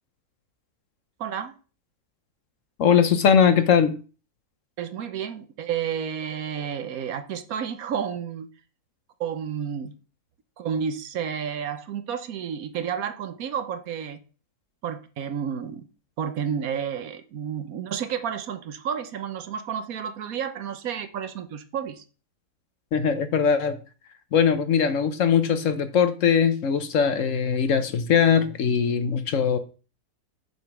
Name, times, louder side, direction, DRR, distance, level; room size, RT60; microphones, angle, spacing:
voice 1, 1.2-1.5 4.8-8.5 9.2-9.9 10.6-14.2 14.8-15.9 16.2-22.0, right 8 dB, 70° right, 1.2 m, -31 dB
voice 2, 2.8-3.9 22.9-23.8 24.3-29.6, left 7 dB, 60° left, 1.1 m, -21 dB
6.9 x 5.0 x 6.0 m
omnidirectional pair, 1.6 m